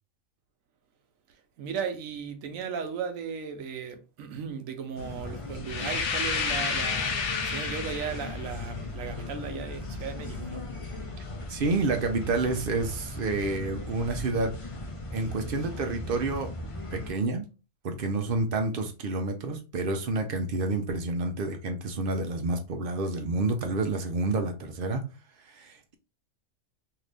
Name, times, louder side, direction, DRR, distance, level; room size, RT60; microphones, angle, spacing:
voice 1, 1.3-10.7, right 6 dB, 85° right, 1.0 m, -36 dB
sound 1, 5.0-17.1, left 2 dB, 55° left, 0.3 m, -38 dB
sound 2, 5.6-8.4, left 5 dB, 90° left, 1.1 m, -30 dB
voice 2, 11.5-14.5 15.1-16.5 16.9-17.5 17.8-25.0 25.5-25.9, right 3 dB, 55° right, 0.7 m, -29 dB
2.8 x 2.6 x 3.3 m
omnidirectional pair, 1.4 m